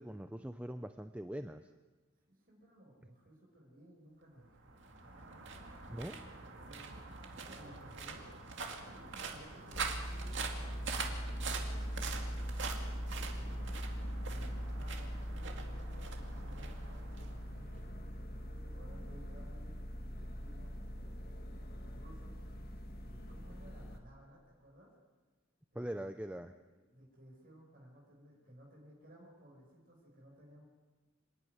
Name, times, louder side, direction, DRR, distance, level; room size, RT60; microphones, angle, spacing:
voice 1, 0.0-1.6 5.9-6.2 25.8-26.5, right 1 dB, 5° right, 8 dB, 0.5 m, -42 dB
voice 2, 2.3-6.9 7.2-8.3 8.6-13.7 14.3-17.8 18.3-22.4 23.0-24.9 25.7-26.4 26.7-30.6, right 1 dB, 45° right, -2 dB, 5.8 m, -59 dB
sound 1, 4.5-17.9, right 4 dB, 65° right, 2.3 m, -44 dB
sound 2, 9.7-24.0, equal, 50° left, 1.8 m, -41 dB
26.0 x 11.0 x 9.7 m, 1.3 s
head